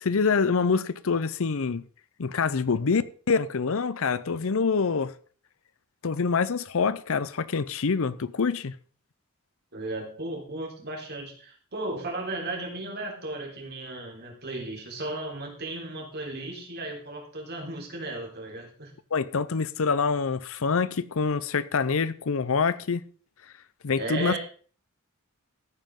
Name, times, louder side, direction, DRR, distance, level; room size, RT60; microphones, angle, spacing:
voice 1, 0.0-1.8 2.2-5.1 6.0-8.7 19.1-23.0 23.8-24.3, left 5 dB, 70° left, 0.7 m, -26 dB
voice 2, 9.7-18.9 24.0-24.4, right 2 dB, 50° right, 3.7 m, -35 dB
14.5 x 9.1 x 3.8 m
head